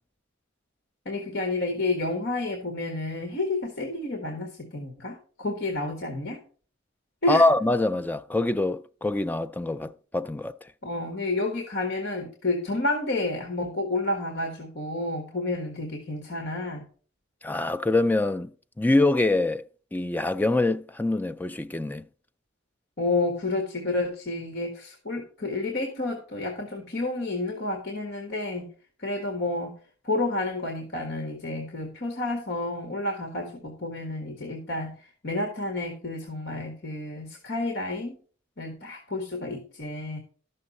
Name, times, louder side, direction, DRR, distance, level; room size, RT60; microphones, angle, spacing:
voice 1, 1.0-6.4 7.2-7.5 10.8-16.9 23.0-28.7 29.0-29.7 30.0-38.1 38.6-40.2, left 2 dB, 55° left, 1.5 m, -30 dB
voice 2, 7.3-10.5 17.4-18.5 18.8-19.6 19.9-22.0, left 2 dB, 10° left, 0.3 m, -24 dB
12.0 x 6.5 x 4.2 m
head